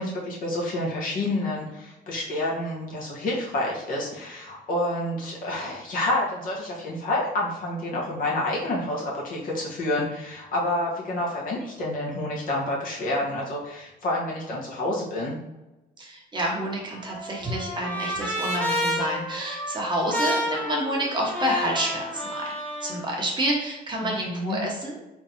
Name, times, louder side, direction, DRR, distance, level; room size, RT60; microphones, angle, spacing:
voice 1, 0.0-15.4 24.0-24.6, left 1 dB, 55° left, -4 dB, 1.4 m, -28 dB
voice 2, 16.0-22.4 22.8-25.0, right 1 dB, 25° right, -2 dB, 1.1 m, -28 dB
Trumpet, 16.7-23.0, left 1 dB, 10° left, 1.3 m, -30 dB
3.9 x 3.5 x 2.9 m, 1.0 s
cardioid pair, 110°, 17 cm